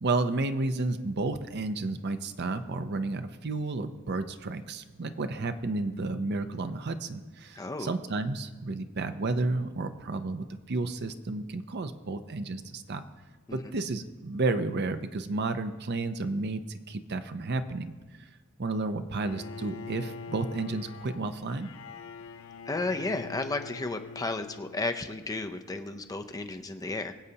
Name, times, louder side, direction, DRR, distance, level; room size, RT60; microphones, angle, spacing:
voice 1, 0.0-13.0 13.5-18.3 18.6-21.7, right 3 dB, 55° right, 9 dB, 0.6 m, -32 dB
voice 2, 7.6-7.9 13.5-13.6 22.7-27.1, left 2 dB, 15° left, 7 dB, 0.5 m, -33 dB
Bowed string instrument, 19.2-25.3, left 5 dB, 75° left, 0.5 m, -44 dB
23.5 x 8.1 x 2.8 m, 1.3 s
head